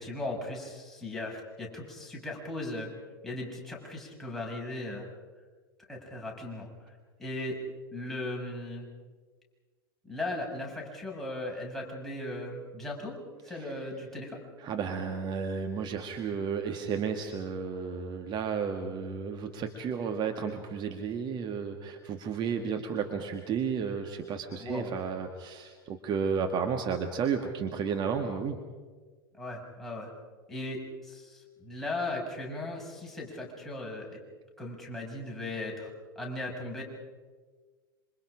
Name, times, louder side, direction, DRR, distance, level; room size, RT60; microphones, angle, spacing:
voice 1, 0.0-2.9 3.2-5.1 5.9-6.7 7.2-7.6 7.9-8.9 10.0-13.2 13.4-14.4 24.6-24.9 29.4-30.1 30.5-34.2 34.6-35.9 36.1-36.8, left 2 dB, ahead, -3 dB, 6.6 m, -37 dB
voice 2, 14.6-28.6, right 6 dB, 35° right, 5 dB, 1.9 m, -32 dB
27.0 x 25.5 x 5.1 m, 1.4 s
figure-of-eight pair, 85°, 13 cm